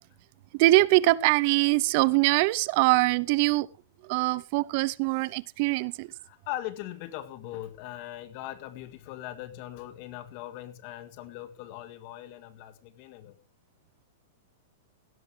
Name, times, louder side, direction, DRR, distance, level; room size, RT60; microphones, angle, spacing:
voice 1, 0.5-3.7 4.0-6.1, right 19 dB, 50° right, 20 dB, 0.5 m, -23 dB
voice 2, 6.3-13.4, left 14 dB, 45° left, 11 dB, 1.8 m, -40 dB
16.5 x 12.0 x 3.2 m, 0.31 s
hypercardioid pair, 140°, 0 cm